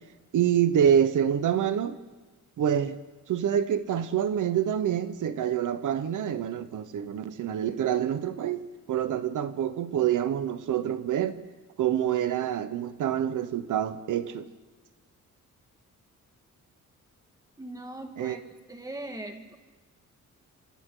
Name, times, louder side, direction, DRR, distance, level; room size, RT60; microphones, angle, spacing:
voice 1, 0.3-2.0 2.6-3.0 3.3-11.4 11.8-14.5 18.2-18.4, right 9 dB, 70° right, 1.1 m, -26 dB
voice 2, 17.6-18.4 18.7-19.6, right 2 dB, 10° right, 1.8 m, -39 dB
27.0 x 26.0 x 3.9 m
wide cardioid pair, 170°, 31 cm